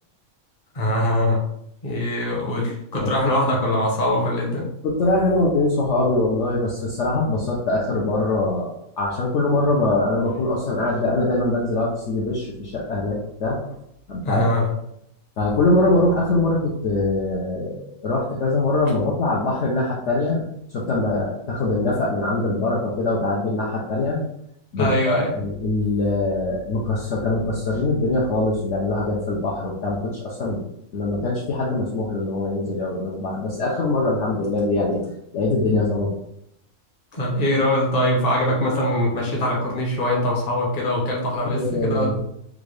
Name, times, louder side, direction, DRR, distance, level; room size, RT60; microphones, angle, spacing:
voice 1, 0.7-1.4 1.8-4.7 14.2-14.7 24.8-25.3 37.1-42.2, left 1 dB, 35° left, -2 dB, 0.9 m, -22 dB
voice 2, 4.8-13.6 14.1-14.5 15.4-20.4 20.7-24.2 24.7-30.6 30.9-36.1 41.5-42.2, left 2 dB, 65° left, -3 dB, 0.9 m, -23 dB
3.7 x 2.4 x 3.2 m, 0.77 s
omnidirectional pair, 1.5 m